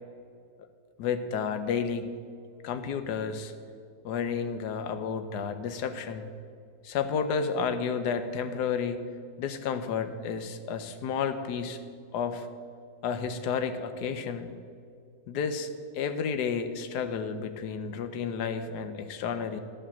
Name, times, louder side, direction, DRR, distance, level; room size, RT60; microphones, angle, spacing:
voice 1, 1.0-2.1 2.6-3.5 4.0-6.3 6.8-9.0 9.4-11.8 12.1-12.5 13.0-14.5 15.3-15.7 15.9-19.6, left 6 dB, 85° left, 9 dB, 1.3 m, -31 dB
11.0 x 5.4 x 7.0 m, 2.3 s
omnidirectional pair, 1.7 m